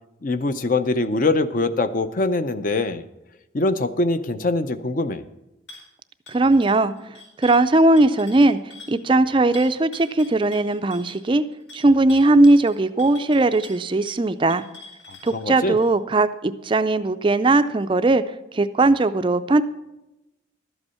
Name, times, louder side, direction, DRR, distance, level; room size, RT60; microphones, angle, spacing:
voice 1, 0.2-3.0 3.5-5.2 15.1-15.8, left 2 dB, 40° left, 12 dB, 0.5 m, -23 dB
sound 1, 5.7-5.9 6.3-9.0 9.5-15.9, left 2 dB, 65° left, 4.6 m, -45 dB
voice 2, 6.3-6.9 7.4-8.6 8.9-11.4 11.7-14.6 15.2-18.2 18.5-19.6, right 2 dB, 25° right, 11 dB, 0.4 m, -18 dB
12.5 x 8.1 x 5.6 m, 0.93 s
head